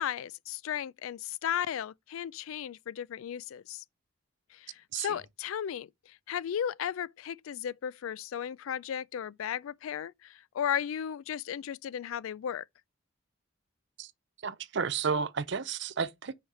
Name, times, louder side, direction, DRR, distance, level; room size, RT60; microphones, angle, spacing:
voice 1, 0.0-3.8 4.5-12.6, left 9 dB, 80° left, 0.3 m, -35 dB
voice 2, 14.4-16.3, right 5 dB, 60° right, 0.6 m, -32 dB
5.7 x 4.9 x 5.6 m
head